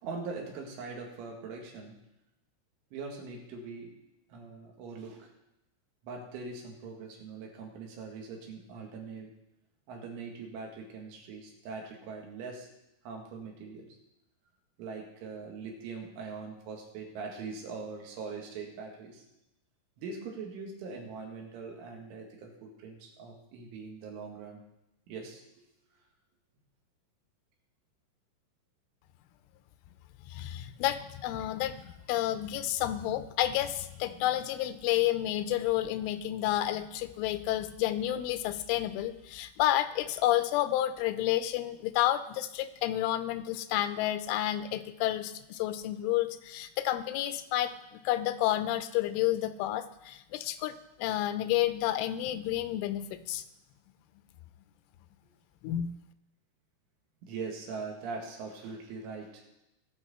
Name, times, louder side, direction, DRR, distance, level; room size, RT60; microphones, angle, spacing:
voice 1, 0.0-2.1 2.9-4.0 4.3-5.3 6.0-9.3 9.9-12.7 13.0-14.0 14.8-19.3 20.0-24.6 25.1-25.6 57.2-59.4, right 4 dB, 80° right, 0 dB, 4.4 m, -42 dB
voice 2, 30.3-53.4 55.6-55.9, left 13 dB, 85° left, 11 dB, 3.1 m, -30 dB
20.5 x 7.0 x 4.3 m, 0.87 s
omnidirectional pair, 5.6 m